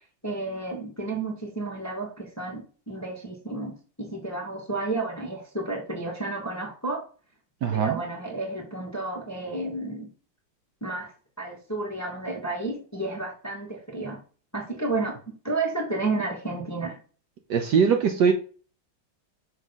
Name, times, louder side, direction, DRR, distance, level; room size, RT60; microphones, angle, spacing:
voice 1, 0.2-7.0 7.7-10.1 10.8-11.1 11.4-14.2 14.5-15.2 15.4-17.0, right 3 dB, 10° left, 1.0 m, -31 dB
voice 2, 7.6-8.0 17.5-18.3, right 6 dB, 65° right, 1.3 m, -21 dB
6.3 x 3.8 x 5.5 m
omnidirectional pair, 2.3 m